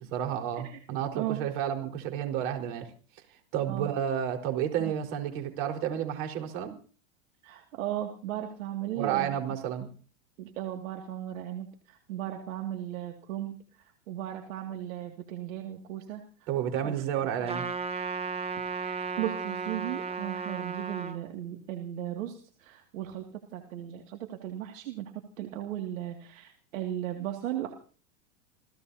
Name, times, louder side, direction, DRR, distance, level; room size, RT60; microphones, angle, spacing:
voice 1, 0.1-2.9 3.5-6.7 8.9-9.9 16.5-17.7, right 9 dB, 55° right, 4 dB, 4.6 m, -31 dB
voice 2, 7.4-9.3 10.4-16.5 16.8-16.9 18.8-27.7, right 12 dB, 75° right, 3 dB, 2.4 m, -36 dB
Trumpet, 17.5-21.2, right 5 dB, 15° right, 1.2 m, -34 dB
28.0 x 16.5 x 2.8 m, 0.41 s
supercardioid pair, 140°, 39 cm